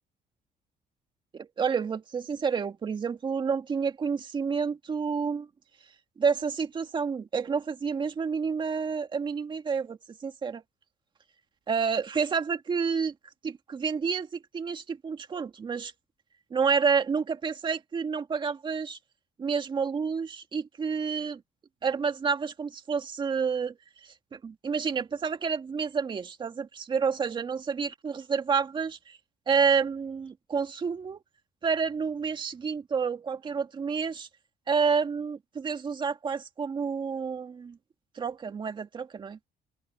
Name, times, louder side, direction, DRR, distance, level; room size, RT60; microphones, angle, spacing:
voice 1, 1.3-5.5 6.2-10.6 11.7-13.1 13.4-15.9 16.5-19.0 19.4-21.4 21.8-23.7 24.0-29.2 29.5-31.2 31.6-34.3 34.7-37.8 38.2-39.4, right 5 dB, 30° right, 2.0 m, -29 dB
open air
cardioid pair, 135°, 15 cm